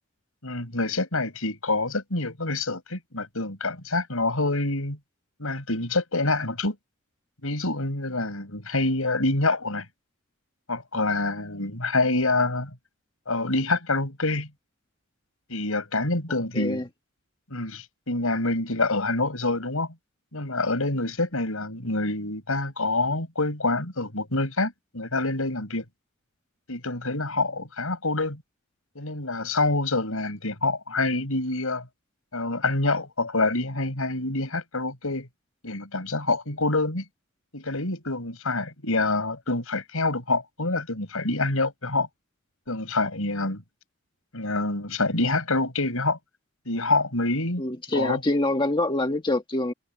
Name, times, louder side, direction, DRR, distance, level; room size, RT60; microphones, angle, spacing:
voice 1, 0.4-5.0 5.4-6.8 7.4-9.9 10.7-12.7 13.3-14.5 15.5-16.8 17.5-19.9 20.3-25.8 26.7-28.4 29.0-31.9 32.3-35.3 35.6-37.0 37.5-42.1 42.7-43.6 44.3-46.2 46.7-47.6 47.9-48.2, left 2 dB, 80° left, 5.5 m, -26 dB
voice 2, 16.5-16.9 47.6-49.7, left 2 dB, 25° left, 1.6 m, -25 dB
head